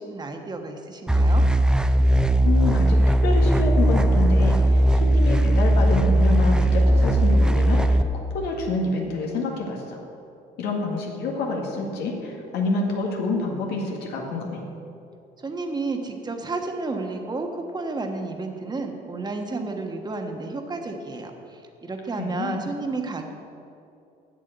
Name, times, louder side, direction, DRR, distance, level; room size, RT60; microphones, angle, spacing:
voice 1, 0.0-1.5 15.4-23.3, right 3 dB, 25° right, 4 dB, 1.3 m, -31 dB
sound 1, 1.1-8.0, right 1 dB, 5° right, 0.4 m, -18 dB
voice 2, 2.4-8.0 8.3-10.0 10.6-14.6 22.2-22.6, left 3 dB, 80° left, -1 dB, 1.8 m, -27 dB
7.9 x 7.9 x 7.9 m, 2.7 s
cardioid pair, 110°, 17 cm